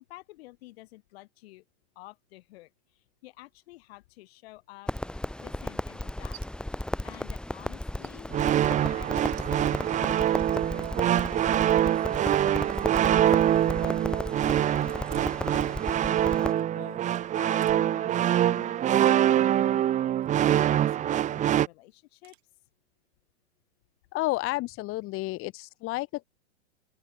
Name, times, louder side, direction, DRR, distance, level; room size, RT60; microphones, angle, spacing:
voice 1, 0.1-1.6 2.0-4.9 5.4-6.4 7.0-8.4 8.7-15.1 16.0-20.0 20.5-22.4, left 19 dB, 55° left, 5.9 m, -51 dB
Crackle, 4.9-16.5, left 1 dB, ahead, 1.6 m, -35 dB
sound 1, 6.3-6.5 6.8-7.2 7.5-7.6 7.9-11.1 11.6-13.0 13.3-13.4 14.8-16.2 16.5-18.1 18.5-18.9 20.2-20.6 21.1-21.4 22.2-22.4, right 18 dB, 60° right, 4.8 m, -53 dB
sound 2, 8.3-21.7, right 11 dB, 20° right, 0.8 m, -24 dB
voice 2, 24.1-26.2, left 19 dB, 35° left, 1.9 m, -31 dB
hypercardioid pair, 115°, 36 cm